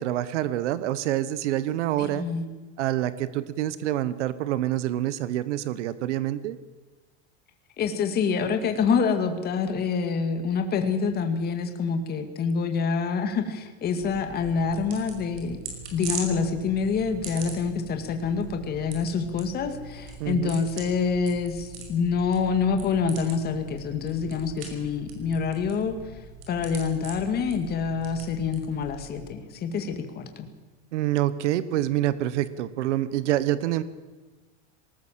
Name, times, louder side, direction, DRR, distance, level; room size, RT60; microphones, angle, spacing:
voice 1, 0.0-2.2 2.8-6.6 20.2-20.6 30.9-33.8, right 13 dB, 90° right, 15 dB, 1.2 m, -26 dB
voice 2, 2.0-2.5 7.8-15.6 15.9-26.0 26.5-30.5, left 5 dB, 30° left, 7 dB, 2.1 m, -26 dB
sound 1, 14.0-29.2, right 4 dB, 65° right, 5.6 m, -41 dB
19.5 x 19.0 x 7.5 m, 1.3 s
supercardioid pair, 155°, 34 cm